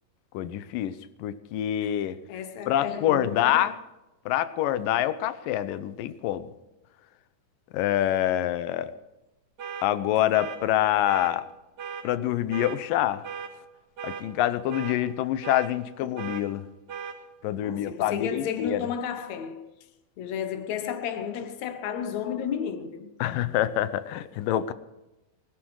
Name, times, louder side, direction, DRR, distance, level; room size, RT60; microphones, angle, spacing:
voice 1, 0.3-2.2 2.7-3.8 4.3-6.5 7.7-8.9 9.8-11.4 12.0-13.2 14.0-16.6 17.4-18.9 23.2-24.7, left 12 dB, 80° left, 2.4 m, -26 dB
voice 2, 2.3-3.7 16.0-16.2 17.6-19.7 20.2-23.5, left 8 dB, 60° left, 2.3 m, -33 dB
sound 1, 9.6-9.9 10.3-10.6 11.0-11.3 11.8-12.0 12.5-12.8 13.2-13.5 14.0-14.2 14.7-15.0 15.4-15.7 16.2-16.4 16.9-17.2, right 7 dB, 55° right, 3.7 m, -37 dB
20.5 x 12.5 x 4.8 m
omnidirectional pair, 4.0 m